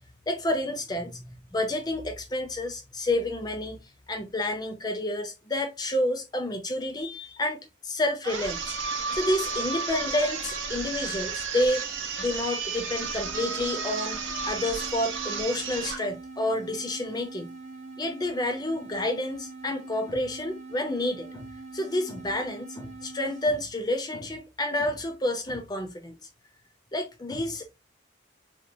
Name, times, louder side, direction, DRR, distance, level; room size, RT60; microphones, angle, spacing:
voice 1, 0.3-3.8 4.1-8.8 9.1-17.5 18.0-21.5 21.7-26.2 26.9-27.8, left 1 dB, 20° left, 0.5 m, -29 dB
sound 1, 8.2-16.1, right 5 dB, 80° right, 0.7 m, -33 dB
sound 2, 13.2-23.6, right 3 dB, 35° right, 0.5 m, -43 dB
2.9 x 2.2 x 2.6 m
head